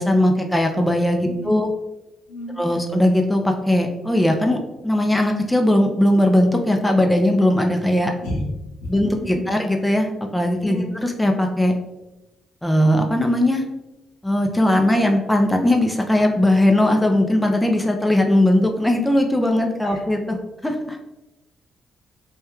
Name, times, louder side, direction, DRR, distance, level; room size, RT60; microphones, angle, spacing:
voice 1, 0.0-1.7 2.6-4.6 4.8-8.1 8.9-11.7 12.6-13.6 14.2-21.0, left 1 dB, 10° left, 3 dB, 0.4 m, -19 dB
voice 2, 1.3-1.6 2.3-2.8 8.2-8.4 8.8-9.4 10.6-10.9 19.8-20.0, left 1 dB, 85° left, -1 dB, 0.6 m, -32 dB
2.8 x 2.2 x 2.3 m, 1.0 s
supercardioid pair, 55°, 0 cm